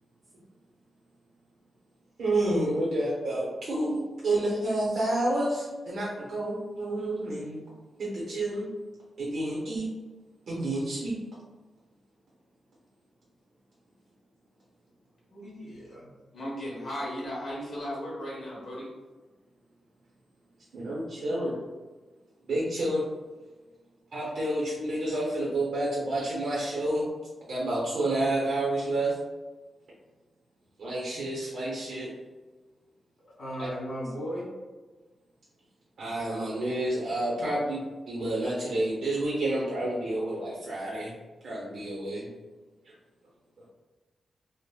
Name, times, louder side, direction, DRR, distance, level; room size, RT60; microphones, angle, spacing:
voice 1, 2.2-7.6 8.0-8.7 9.2-9.9 10.5-11.2 20.7-21.6 22.5-23.1 24.1-27.0 27.5-29.2 30.8-32.1 33.6-33.7 36.0-41.1 41.4-42.3, right 1 dB, 70° right, -6 dB, 0.7 m, -29 dB
voice 2, 15.3-16.1 33.4-34.5, equal, 75° left, -5 dB, 1.4 m, -36 dB
voice 3, 16.3-18.9, equal, 55° left, -5 dB, 1.0 m, -36 dB
3.3 x 2.0 x 2.2 m, 1.3 s
wide cardioid pair, 160°, 0 cm